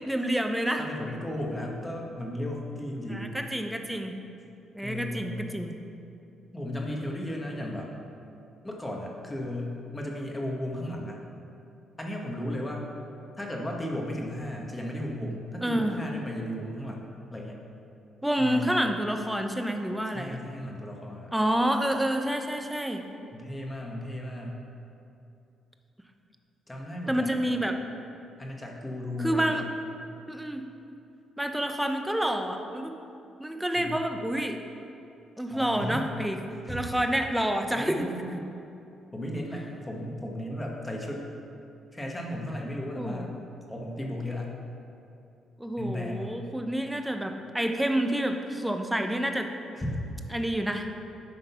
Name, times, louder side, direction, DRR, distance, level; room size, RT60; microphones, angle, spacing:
voice 1, 0.0-0.8 3.1-4.2 4.7-5.8 15.6-16.0 18.2-20.4 21.3-23.0 27.1-27.8 29.2-29.6 30.3-30.6 31.4-32.9 33.4-34.6 35.4-36.4 36.7-38.1 43.0-43.3 45.6-49.5 50.3-50.9, right 1 dB, 5° right, 5 dB, 0.7 m, -28 dB
voice 2, 0.8-3.3 4.8-5.4 6.5-7.9 8.6-11.2 12.0-12.8 13.4-17.6 18.4-18.7 20.1-21.3 23.3-24.6 26.7-27.6 28.4-29.7 33.7-34.0 35.5-36.0 36.6-36.8 37.7-38.4 39.1-41.3 41.9-43.3 43.7-44.5 45.8-46.3 49.7-49.9, left 1 dB, 15° left, -1 dB, 1.3 m, -35 dB
9.8 x 3.9 x 5.6 m, 2.7 s
cardioid pair, 90°, 0 cm